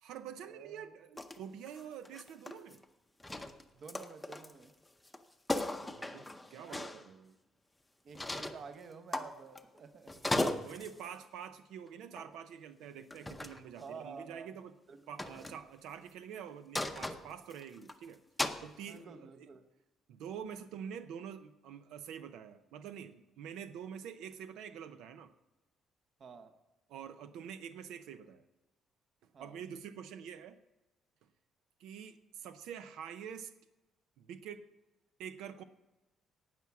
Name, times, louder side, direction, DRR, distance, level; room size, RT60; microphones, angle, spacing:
voice 1, 0.0-2.8 5.7-7.3 10.6-14.7 15.1-18.2 18.6-19.5 20.1-25.3 26.9-28.4 29.4-30.6 31.8-33.5 34.2-34.7 35.2-35.6, right 8 dB, 90° right, 11 dB, 0.7 m, -46 dB
voice 2, 0.5-0.9 3.7-4.7 6.5-6.9 8.0-10.2 13.8-14.6 14.9-15.0 18.9-19.6 26.2-26.5 29.3-29.6, right 5 dB, 40° right, 9 dB, 0.9 m, -50 dB
sound 1, 1.2-1.4 1.7-2.9 3.2-4.6 5.0-5.2 5.5-7.0 8.1-8.6 9.1-9.8 10.1-11.0 12.2-12.4 13.1-13.6 15.2-15.6 16.7-17.9 18.4-18.6, left 1 dB, 5° left, 0.6 m, -37 dB
18.0 x 6.0 x 5.9 m, 1.0 s
cardioid pair, 165°, 0 cm